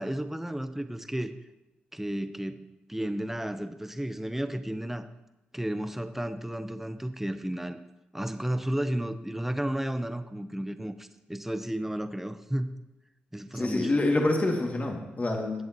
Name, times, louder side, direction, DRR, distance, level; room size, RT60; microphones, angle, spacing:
voice 1, 0.0-1.3 1.9-5.1 5.5-7.8 8.1-12.7 13.3-13.9, right 1 dB, 5° right, 9 dB, 1.0 m, -33 dB
voice 2, 13.5-15.5, left 2 dB, 35° left, 0 dB, 2.5 m, -26 dB
18.5 x 7.8 x 3.1 m, 0.98 s
supercardioid pair, 55°, 4 cm